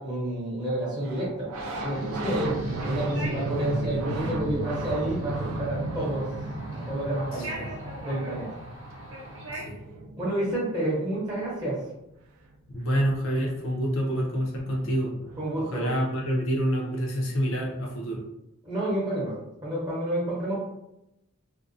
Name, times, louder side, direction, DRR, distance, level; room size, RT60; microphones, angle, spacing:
voice 1, 0.0-1.5 1.8-2.6 2.8-6.3 6.8-7.7 8.0-8.5 10.2-11.8 15.4-15.9 18.6-20.7, right 1 dB, 20° right, -7 dB, 0.7 m, -29 dB
sound 1, 1.0-11.4 13.5-13.6 13.8-15.6, right 2 dB, 90° right, 0.4 m, -35 dB
sound 2, 1.5-9.6, right 1 dB, 60° right, 0.8 m, -41 dB
voice 2, 12.7-15.1 15.6-18.2, equal, 65° left, -1 dB, 0.7 m, -27 dB
2.5 x 2.2 x 2.5 m, 0.87 s
head